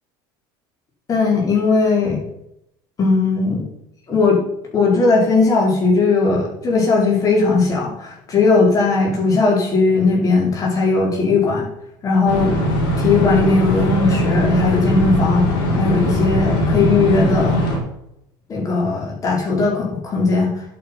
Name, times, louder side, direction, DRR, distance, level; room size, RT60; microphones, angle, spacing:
voice 1, 1.1-2.2 3.0-3.7 4.1-4.4 4.7-11.7 12.0-12.5 13.0-17.6 18.5-20.6, left 3 dB, 30° left, -1 dB, 5.2 m, -18 dB
sound 1, 12.3-17.8, left 1 dB, 75° left, 4.7 m, -20 dB
10.5 x 8.9 x 5.7 m, 0.80 s
supercardioid pair, 115°, 11 cm